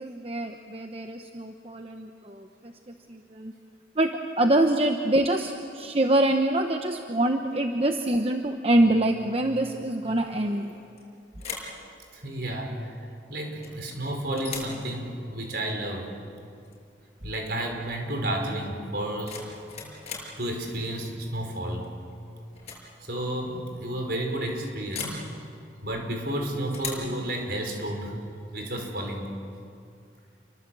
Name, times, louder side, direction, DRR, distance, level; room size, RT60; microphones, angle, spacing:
voice 1, 0.0-3.5 4.0-4.1 4.4-10.7, right 1 dB, 30° right, 4 dB, 1.0 m, -25 dB
sound 1, 10.7-11.0 11.4-11.8 13.6-14.0 14.4-14.8 16.6-16.8 17.2-17.5 19.0-20.4 21.8-22.1 22.5-22.9 23.1-23.2 24.9-25.3 26.7-27.1, left 5 dB, 35° left, 6.2 m, -38 dB
voice 2, 12.1-16.1 17.2-19.4 19.8-19.9 20.4-21.9 23.0-25.2 25.8-28.1 28.5-29.3, right 1 dB, 60° right, 2 dB, 5.1 m, -31 dB
29.5 x 23.5 x 7.8 m, 2.4 s
head